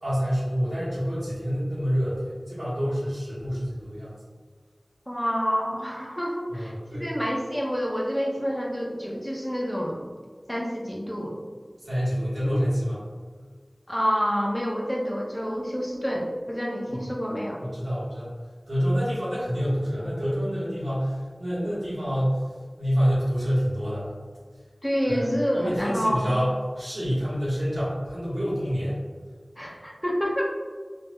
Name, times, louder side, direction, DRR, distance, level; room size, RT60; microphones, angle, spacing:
voice 1, 0.0-4.2 6.5-7.1 11.8-13.0 16.9-17.0 17.6-18.3 18.7-22.4 22.8-24.2 25.0-29.0, equal, 85° right, -10 dB, 1.3 m, -27 dB
voice 2, 5.1-6.7 7.0-10.0 10.5-11.3 13.9-17.6 24.8-26.3 29.6-30.4, equal, 5° left, -2 dB, 0.6 m, -28 dB
3.4 x 2.7 x 2.2 m, 1.5 s
wide cardioid pair, 50°, 0 cm